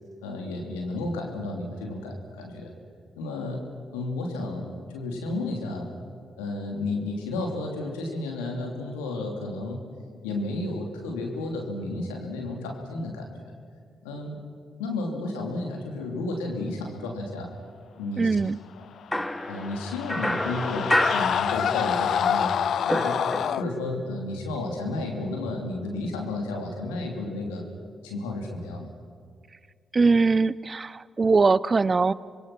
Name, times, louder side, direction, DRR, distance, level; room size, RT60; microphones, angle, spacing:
voice 1, 0.2-2.7 3.2-5.9 6.4-9.9 10.2-13.3 14.0-14.4 14.8-17.5 18.0-18.3 19.5-23.2 23.6-27.7 28.0-28.9, left 2 dB, 90° left, 1 dB, 2.9 m, -32 dB
voice 2, 18.2-18.6 29.9-32.1, right 4 dB, 40° right, 20 dB, 0.7 m, -21 dB
sound 1, 19.1-22.1 22.4-23.9, left 1 dB, 10° left, 1.0 m, -29 dB
sound 2, 19.2-23.6, left 8 dB, 65° left, 0.4 m, -27 dB
26.5 x 21.5 x 6.0 m, 2.2 s
hypercardioid pair, 40°, 0 cm